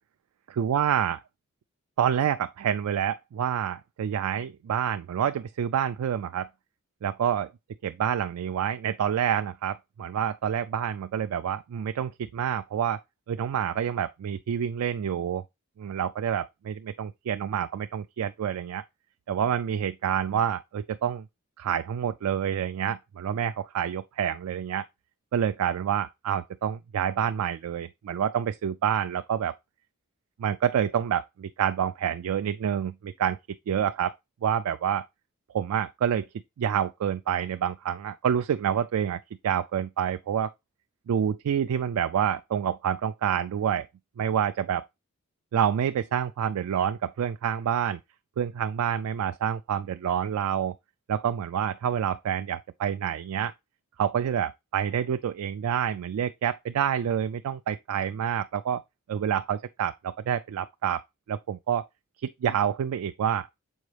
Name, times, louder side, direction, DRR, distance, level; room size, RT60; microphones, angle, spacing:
voice 1, 0.6-1.2 2.0-6.5 7.0-7.5 7.8-13.0 13.3-15.4 15.8-18.8 19.3-21.2 21.6-24.8 25.3-29.5 30.4-33.4 33.7-34.1 34.4-35.0 35.5-36.3 36.6-39.2 39.4-40.5 41.1-43.9 44.2-44.8 45.5-48.0 48.4-50.7 51.1-53.5 54.0-58.8 59.1-61.0 61.3-61.8 62.2-63.5, right 8 dB, 90° right, 0.3 m, -28 dB
6.3 x 4.7 x 3.2 m
head